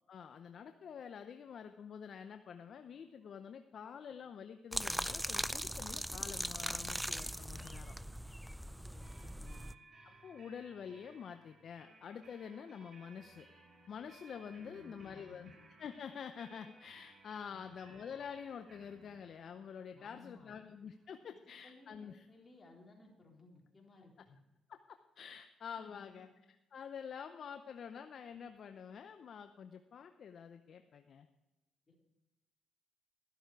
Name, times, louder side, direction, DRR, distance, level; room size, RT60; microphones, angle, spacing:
voice 1, 0.1-8.0 10.0-13.5 13.9-15.5 15.8-22.2 24.7-26.3 26.7-31.3, left 7 dB, 60° left, 8 dB, 0.7 m, -48 dB
sound 1, 4.7-9.7, equal, 5° right, 0.4 m, -40 dB
voice 2, 8.7-9.6 14.6-15.5 19.9-20.5 21.6-24.4 25.8-26.3 31.9-32.0, left 3 dB, 30° left, 0 dB, 3.8 m, -60 dB
sound 2, 9.0-22.6, right 3 dB, 45° right, 4.1 m, -62 dB
12.5 x 11.0 x 4.7 m, 1.0 s
cardioid pair, 75°, 0 cm